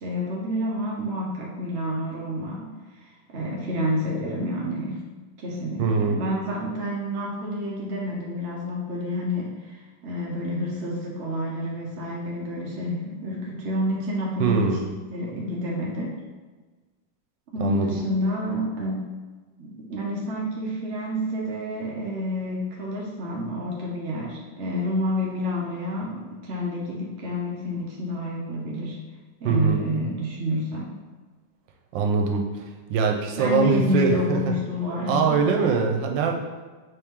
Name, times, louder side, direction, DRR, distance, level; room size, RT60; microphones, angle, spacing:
voice 1, 0.0-5.0 5.4-14.8 15.1-16.2 17.5-19.0 19.6-29.0 29.4-30.9 33.4-35.4, left 1 dB, 60° right, -4 dB, 0.7 m, -29 dB
voice 2, 5.8-6.2 14.4-14.8 17.6-18.0 29.4-29.8 31.9-32.4 32.9-34.4 35.1-36.3, right 5 dB, 90° right, 3 dB, 1.3 m, -22 dB
4.5 x 3.3 x 3.6 m, 1.3 s
omnidirectional pair, 2.0 m